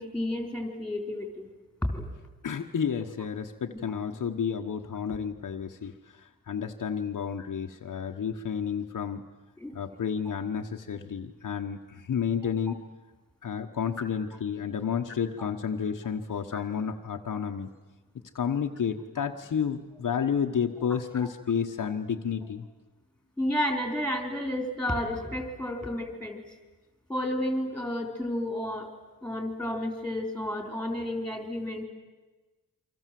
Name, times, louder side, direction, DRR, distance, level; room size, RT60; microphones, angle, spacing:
voice 1, 0.0-1.5 1.8-2.1 3.7-3.8 7.4-7.5 9.6-9.7 16.5-16.6 20.9-21.0 21.8-21.9 23.4-26.4 27.1-28.9 29.2-31.8, left 1 dB, 5° left, 4 dB, 4.2 m, -31 dB
voice 2, 2.4-9.2 9.7-12.8 13.4-17.7 18.3-22.6, left 7 dB, 60° left, 3 dB, 1.3 m, -31 dB
28.5 x 25.0 x 7.7 m, 1.2 s
wide cardioid pair, 165°, 35 cm